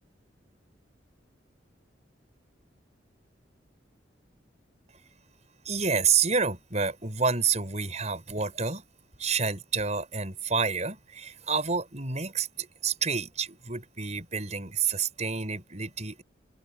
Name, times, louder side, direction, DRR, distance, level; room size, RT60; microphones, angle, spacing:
voice 1, 5.7-8.8 9.2-16.2, right 5 dB, 40° right, 7.1 m, -29 dB
open air
head